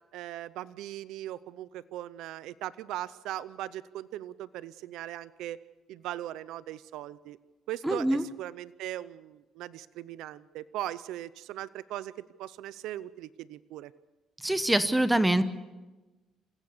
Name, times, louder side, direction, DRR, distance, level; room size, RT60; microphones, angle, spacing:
voice 1, 0.1-5.6 5.9-7.4 7.7-12.1 12.4-13.9, right 13 dB, 80° right, 17 dB, 0.6 m, -39 dB
voice 2, 7.8-8.2 14.4-15.4, right 1 dB, 10° right, 12 dB, 1.0 m, -24 dB
27.5 x 16.0 x 6.7 m, 1.2 s
cardioid pair, 110°, 0 cm